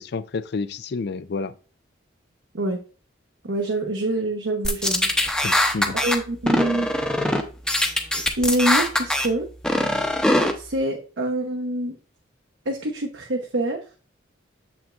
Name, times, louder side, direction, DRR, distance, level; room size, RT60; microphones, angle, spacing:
voice 1, 0.0-1.5 5.4-6.0, left 4 dB, 55° left, 0.4 m, -30 dB
voice 2, 3.4-5.1 5.4-5.5 6.0-6.9 8.4-9.5 10.5-12.0 12.7-13.8, right 1 dB, 70° right, 0.9 m, -25 dB
sound 1, 4.6-6.2 6.5-7.4 7.7-9.3 9.6-10.5, left 1 dB, 5° left, 0.7 m, -21 dB
7.2 x 6.0 x 2.5 m
head